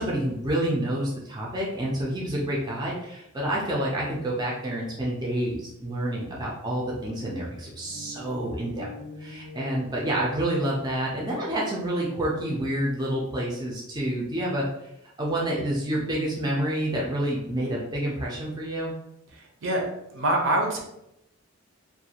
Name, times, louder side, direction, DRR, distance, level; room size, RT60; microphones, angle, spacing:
voice 1, 0.0-8.9 9.2-14.6 15.2-18.9, right 1 dB, 20° right, -4 dB, 0.4 m, -28 dB
sound 1, 5.7-10.6, left 2 dB, 50° left, 0.5 m, -46 dB
voice 2, 19.3-19.9 20.1-20.8, right 1 dB, 65° right, 1 dB, 0.6 m, -25 dB
2.4 x 2.2 x 2.8 m, 0.84 s
head